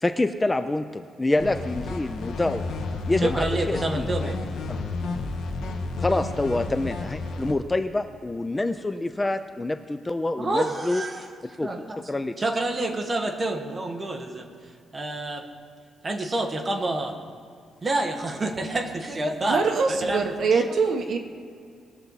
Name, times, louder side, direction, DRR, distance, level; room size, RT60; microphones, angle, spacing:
voice 1, 0.0-2.6 3.1-4.3 6.0-11.0 11.6-12.3, left 2 dB, 10° left, 9 dB, 0.3 m, -27 dB
sound 1, 1.4-7.5, left 3 dB, 80° left, 1.3 m, -31 dB
voice 2, 3.2-4.4 10.4-11.3 11.6-12.0 12.4-14.5 14.9-15.4 16.0-17.1 17.8-19.6 20.0-20.2 20.5-20.6, right 2 dB, 20° right, 3 dB, 1.1 m, -28 dB
voice 3, 19.4-21.2, right 4 dB, 50° right, 4 dB, 1.1 m, -23 dB
20.0 x 6.8 x 4.0 m, 2.3 s
cardioid pair, 160°, 0 cm